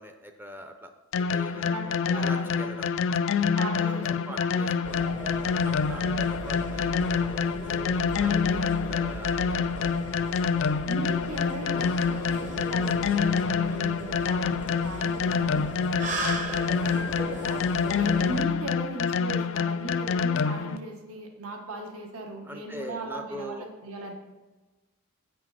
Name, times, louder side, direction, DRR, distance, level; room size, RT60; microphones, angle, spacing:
voice 1, 0.0-3.0 3.8-10.0 22.4-23.7, equal, 10° right, 6 dB, 0.5 m, -43 dB
sound 1, 1.1-20.8, left 6 dB, 55° left, 0.3 m, -27 dB
voice 2, 1.5-2.5 3.6-4.6 8.1-8.7 10.8-16.2 16.8-17.6 17.9-24.1, right 2 dB, 75° right, 2 dB, 1.2 m, -38 dB
sound 2, 4.8-18.4, right 1 dB, 35° right, 0.9 m, -37 dB
8.5 x 6.1 x 4.7 m, 1.2 s
head